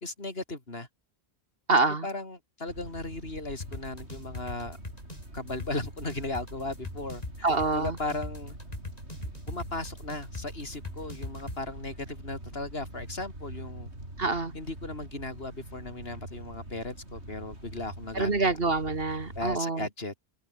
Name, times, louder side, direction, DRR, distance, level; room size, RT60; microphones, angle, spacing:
voice 1, 0.0-0.9 1.7-4.8 5.3-8.6 9.5-13.9 14.5-18.6 19.4-20.2, left 2 dB, 65° left, 4.4 m, -37 dB
voice 2, 1.7-2.1 7.4-8.0 14.2-14.5 18.1-19.9, right 3 dB, 60° right, 2.6 m, -26 dB
sound 1, 2.7-19.6, right 1 dB, 85° right, 8.3 m, -44 dB
sound 2, 3.6-11.6, left 1 dB, 35° left, 5.5 m, -39 dB
omnidirectional pair, 1.1 m